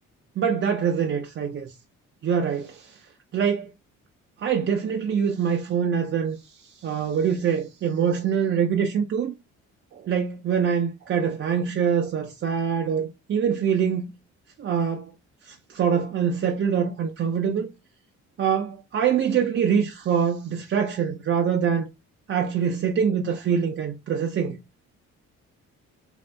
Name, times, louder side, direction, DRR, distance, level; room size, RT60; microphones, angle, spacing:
voice 1, 0.4-1.7 2.2-3.0 3.3-3.7 4.4-9.3 9.9-14.1 14.6-15.1 15.4-17.7 18.4-21.9 22.3-24.6, right 7 dB, 40° right, 0.5 m, -24 dB
2.6 x 2.4 x 3.3 m
cardioid pair, 90°, 30 cm